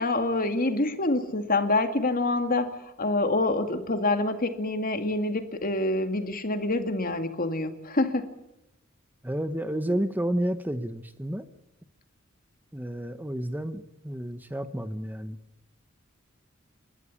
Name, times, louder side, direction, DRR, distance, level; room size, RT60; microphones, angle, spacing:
voice 1, 0.0-8.3, left 2 dB, 40° left, 7 dB, 2.2 m, -26 dB
voice 2, 9.2-11.5 12.7-15.4, right 1 dB, 10° right, 10 dB, 0.9 m, -31 dB
29.5 x 13.5 x 8.6 m, 0.91 s
head